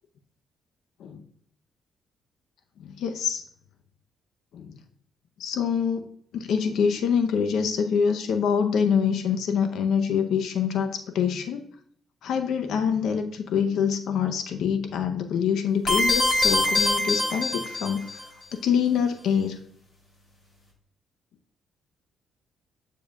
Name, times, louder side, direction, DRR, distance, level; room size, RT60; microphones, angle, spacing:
voice 1, 2.8-3.4 4.5-4.7 5.4-11.6 12.2-18.3 18.5-19.6, left 7 dB, 75° left, 7 dB, 0.6 m, -25 dB
sound 1, 15.9-18.2, left 2 dB, 45° left, 2.8 m, -23 dB
7.4 x 6.8 x 2.3 m, 0.66 s
cardioid pair, 90°, 0 cm